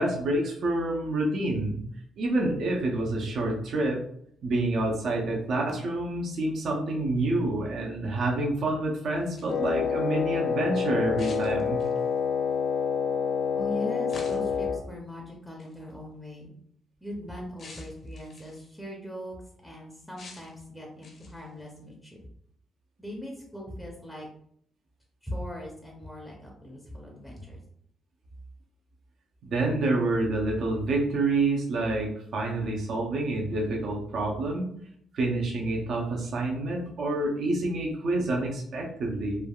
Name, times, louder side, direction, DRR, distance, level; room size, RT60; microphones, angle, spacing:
voice 1, 0.0-1.8 2.2-4.0 4.4-11.8 29.4-34.7 35.1-39.5, right 2 dB, 65° right, -1 dB, 0.5 m, -28 dB
sound 1, 9.2-9.7 11.2-12.1 14.1-14.6 15.6-15.8 17.6-18.7 20.2-20.6 21.0-21.5, left 3 dB, 55° left, 0.7 m, -47 dB
Wind instrument woodwind instrument, 9.5-14.8, left 6 dB, 75° left, 0.3 m, -28 dB
voice 2, 13.5-16.5 17.0-19.4 19.6-22.2 23.0-24.3 25.2-27.6, left 1 dB, ahead, -2 dB, 0.6 m, -39 dB
3.2 x 2.3 x 2.2 m, 0.66 s
cardioid pair, 100°, 0 cm